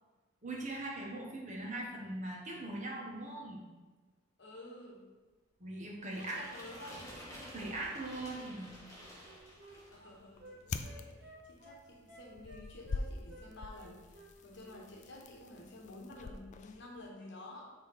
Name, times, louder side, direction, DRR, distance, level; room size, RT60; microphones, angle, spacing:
voice 1, 0.4-3.6 5.6-6.4 7.5-8.8, right 2 dB, 35° right, -2 dB, 1.1 m, -40 dB
voice 2, 4.4-5.1 6.1-7.1 9.7-17.7, left 1 dB, 60° left, 0 dB, 1.1 m, -51 dB
sound 1, 6.1-10.1, equal, 15° left, 1.6 m, -50 dB
Wind instrument woodwind instrument, 8.8-13.5 13.7-14.8 15.0-15.2, right 1 dB, 60° right, 1.2 m, -56 dB
sound 2, 9.0-17.1, left 3 dB, 35° left, 0.3 m, -46 dB
5.6 x 3.7 x 4.6 m, 1.3 s
head